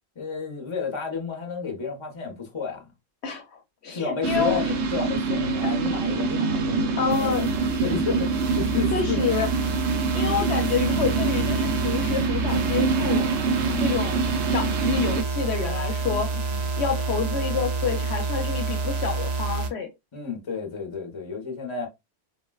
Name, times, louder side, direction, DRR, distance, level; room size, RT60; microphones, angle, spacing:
voice 1, 0.2-2.9 3.9-9.2 13.5-14.0 16.0-16.7 20.1-21.9, left 5 dB, 30° left, 0.7 m, -32 dB
voice 2, 3.2-4.7 5.6-5.7 7.0-7.5 8.9-9.5 10.1-13.3 13.8-14.2 14.5-16.3 16.8-19.9, left 6 dB, 65° left, 0.8 m, -28 dB
sound 1, 4.2-15.2, right 4 dB, 85° right, 1.0 m, -25 dB
sound 2, 7.1-19.7, right 4 dB, 50° right, 0.5 m, -29 dB
4.0 x 2.1 x 2.2 m
omnidirectional pair, 1.3 m